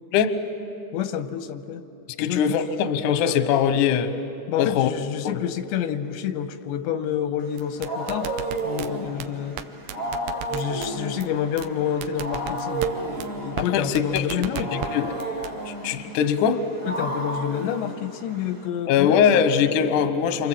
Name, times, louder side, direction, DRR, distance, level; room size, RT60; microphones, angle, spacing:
voice 1, 0.9-1.8 2.2-2.6 4.5-8.3 8.6-9.6 10.5-14.9 16.9-19.2, left 9 dB, 90° left, 9 dB, 3.2 m, -28 dB
voice 2, 2.2-4.2 4.6-4.9 5.2-5.4 13.6-14.4 14.7-15.1 15.6-16.6 18.9-20.5, left 8 dB, 70° left, 10 dB, 2.0 m, -22 dB
Wild animals, 7.4-18.7, right 2 dB, 20° right, 1.5 m, -33 dB
sound 1, 7.6-8.9 9.2-9.3 9.6-9.7 9.9-10.9 11.2-11.3 11.6-11.7 12.0-12.9 13.2-13.3 13.6-13.7 14.0-14.9 15.2-15.5, right 11 dB, 85° right, 3.0 m, -33 dB
28.5 x 27.0 x 7.5 m, 2.9 s
omnidirectional pair, 5.0 m